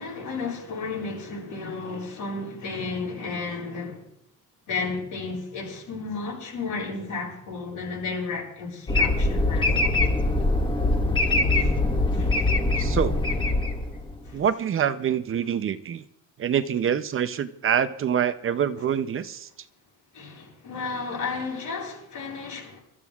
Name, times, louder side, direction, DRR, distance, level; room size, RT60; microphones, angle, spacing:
voice 1, 0.0-4.1 4.7-9.9 11.6-11.7 12.1-12.5 14.3-14.4 20.1-22.8, left 4 dB, 70° left, 7.8 m, -33 dB
sound 1, 8.9-14.3, left 2 dB, 15° left, 1.2 m, -23 dB
voice 2, 12.8-13.2 14.3-16.0 16.4-19.5, right 8 dB, 40° right, 0.6 m, -25 dB
28.0 x 14.0 x 2.4 m
cardioid pair, 165°, 32 cm